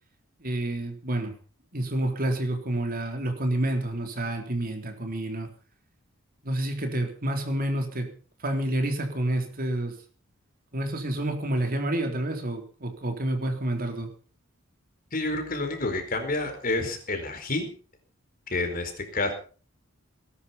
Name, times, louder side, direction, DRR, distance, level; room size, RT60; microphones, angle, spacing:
voice 1, 0.4-1.3 1.7-5.5 6.4-8.1 8.4-9.9 10.7-14.1, right 1 dB, 45° right, 5 dB, 3.7 m, -29 dB
voice 2, 15.1-17.7 18.5-19.3, left 2 dB, 45° left, 6 dB, 4.5 m, -29 dB
19.5 x 11.5 x 5.7 m, 0.39 s
head